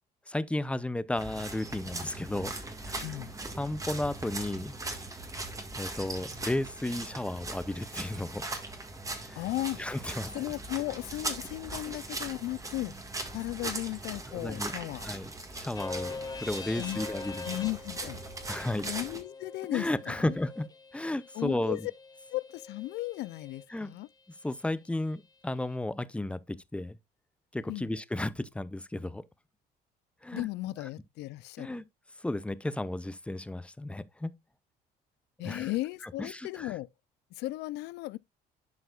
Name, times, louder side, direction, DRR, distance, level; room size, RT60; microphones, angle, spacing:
voice 1, 0.3-2.5 2.8-3.2 3.5-4.7 5.7-8.4 9.3-9.4 9.8-10.3 14.3-14.7 15.0-17.6 18.5-18.9 19.7-20.7 20.9-21.9 23.7-23.9 24.4-26.4 26.7-27.0 27.5-29.2 30.2-30.5 31.6-31.8 32.2-34.3 35.4-35.7 36.0-36.8, left 1 dB, 5° left, 0.6 m, -33 dB
sound 1, 1.2-19.2, right 2 dB, 20° right, 1.6 m, -40 dB
voice 2, 3.0-3.3 9.3-9.8 10.3-12.9 13.3-15.1 16.8-17.0 17.4-18.2 18.8-20.3 21.3-21.8 22.3-24.1 27.7-27.9 30.3-31.8 35.4-36.9 37.4-38.2, left 18 dB, 80° left, 0.4 m, -35 dB
sound 2, 15.8-23.6, left 4 dB, 25° left, 1.0 m, -44 dB
11.5 x 4.7 x 2.3 m
cardioid pair, 110°, 17 cm